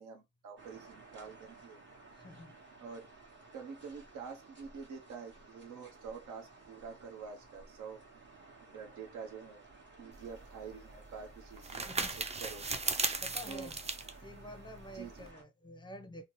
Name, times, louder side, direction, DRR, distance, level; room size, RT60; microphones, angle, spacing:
voice 1, 0.0-1.8 2.8-3.1 3.5-8.0 8.6-9.6 10.0-12.7 13.5-13.7 14.9-15.3, right 5 dB, 75° right, 0.8 m, -47 dB
sound 1, 0.6-15.4, right 3 dB, 40° right, 1.3 m, -56 dB
voice 2, 2.1-2.5 10.1-10.2 11.9-12.1 13.2-13.8 14.2-16.2, equal, 15° left, 0.7 m, -48 dB
sound 2, 10.1-15.3, right 3 dB, 20° right, 0.5 m, -38 dB
2.8 x 2.1 x 3.0 m
cardioid pair, 90°, 30 cm